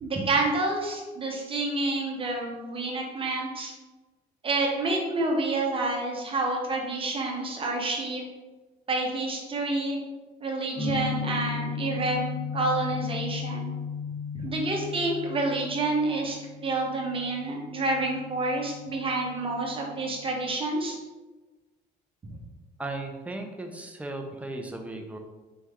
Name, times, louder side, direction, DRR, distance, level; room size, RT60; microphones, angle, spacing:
voice 1, 0.0-3.7 4.4-8.2 8.9-10.0 10.4-13.7 14.3-16.4 16.6-21.0, right 2 dB, 30° right, 0 dB, 1.1 m, -28 dB
sound 1, 10.8-20.5, left 5 dB, 25° left, 1.1 m, -36 dB
voice 2, 22.8-25.2, right 2 dB, 10° right, 3 dB, 0.6 m, -36 dB
4.4 x 3.1 x 3.6 m, 1.2 s
cardioid pair, 110°, 17 cm